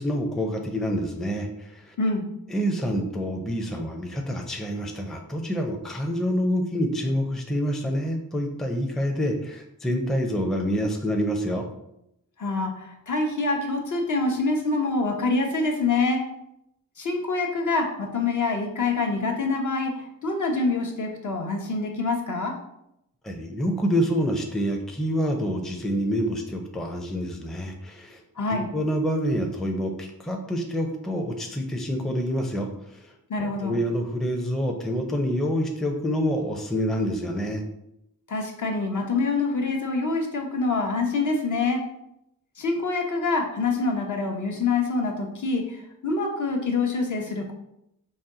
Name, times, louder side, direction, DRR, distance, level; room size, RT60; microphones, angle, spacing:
voice 1, 0.0-2.0 2.5-11.7 23.2-28.2 28.5-33.1 33.4-37.6, equal, ahead, 3 dB, 0.5 m, -27 dB
voice 2, 2.0-2.3 12.4-16.2 17.0-22.5 28.4-28.7 33.3-33.8 38.3-41.8 42.6-47.5, left 3 dB, 55° left, 1 dB, 0.8 m, -26 dB
4.1 x 2.3 x 3.7 m, 0.81 s
cardioid pair, 65°, 35 cm